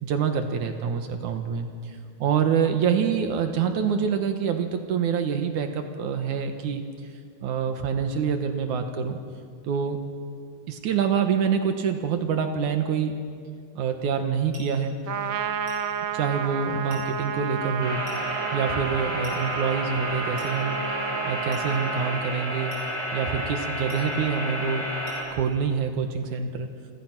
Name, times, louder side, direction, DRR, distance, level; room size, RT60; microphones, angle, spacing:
voice 1, 0.0-6.8 7.4-9.2 9.7-10.0 10.7-13.2 13.8-15.0 16.1-18.0 18.5-20.8 21.2-22.7 23.1-24.8 25.3-26.7, right 6 dB, 80° right, 6 dB, 2.8 m, -26 dB
sound 1, 14.5-14.8 15.7-15.9 16.9-17.1 18.1-18.3 19.2-19.5 20.4-20.6 21.5-21.8 22.7-22.9 23.9-24.1 25.1-25.3, right 1 dB, 30° right, 5.2 m, -45 dB
Trumpet, 15.1-22.3, right 7 dB, 50° right, 1.5 m, -31 dB
sound 2, 17.8-25.2, equal, 45° left, 5.4 m, -31 dB
29.5 x 25.0 x 6.1 m, 2.2 s
omnidirectional pair, 3.4 m